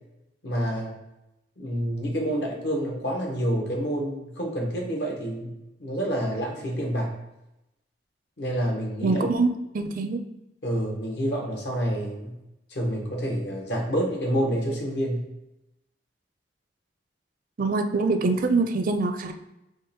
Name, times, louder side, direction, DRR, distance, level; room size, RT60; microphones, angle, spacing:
voice 1, 0.4-0.9 1.6-5.5 5.8-7.2 8.4-9.2 10.6-12.3 12.7-15.2, equal, 75° left, 0 dB, 1.2 m, -28 dB
voice 2, 9.0-10.2 17.6-19.3, right 3 dB, 50° right, 7 dB, 0.5 m, -24 dB
3.7 x 3.0 x 4.3 m, 0.92 s
head